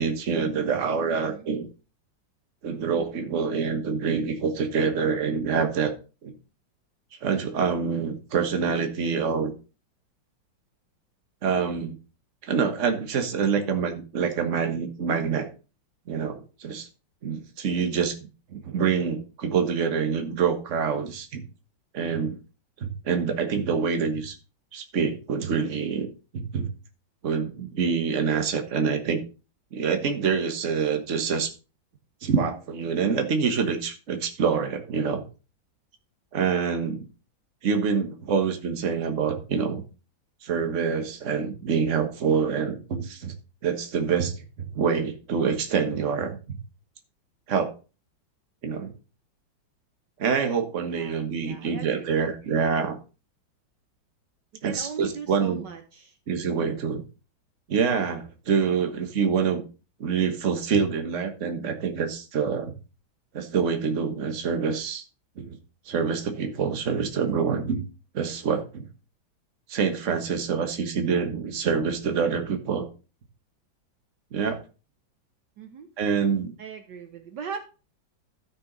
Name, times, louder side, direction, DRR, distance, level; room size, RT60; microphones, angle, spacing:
voice 1, 0.0-1.7 2.6-5.9 6.2-6.3 7.2-9.5 11.4-11.9 12.4-15.5 16.1-16.9 17.2-18.2 18.5-21.4 21.9-22.4 22.8-24.4 24.7-26.1 26.3-26.7 27.2-29.2 29.7-31.5 32.2-35.2 36.3-37.0 37.6-39.8 40.4-43.3 43.6-44.4 44.7-46.6 47.5-47.7 48.6-48.9 50.2-53.0 54.6-55.6 56.3-57.0 57.7-59.6 60.0-62.7 63.3-65.0 65.4-65.6 65.9-67.8 68.1-68.9 69.7-72.9 74.3-74.6 76.0-76.5, right 6 dB, 40° right, 5 dB, 1.5 m, -26 dB
voice 2, 1.1-1.5 50.8-52.6 54.6-56.2 56.5-56.8 75.6-75.9 76.6-77.6, right 6 dB, 65° right, 7 dB, 1.4 m, -40 dB
13.0 x 6.1 x 4.0 m, 0.33 s
omnidirectional pair, 2.1 m